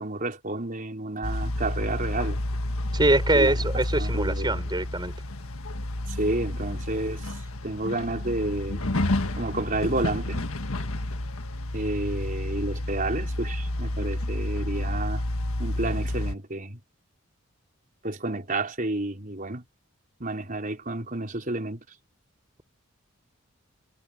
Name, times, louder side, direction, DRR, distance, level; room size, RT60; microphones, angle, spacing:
voice 1, 0.0-2.4 3.3-4.6 6.1-8.8 9.4-10.4 11.7-15.2 15.6-16.8 18.0-19.6 20.2-21.8, right 2 dB, 40° right, 4.4 m, -30 dB
sound 1, 1.2-16.4, left 1 dB, 80° left, 1.6 m, -30 dB
voice 2, 2.9-5.1, right 2 dB, 20° right, 5.7 m, -23 dB
head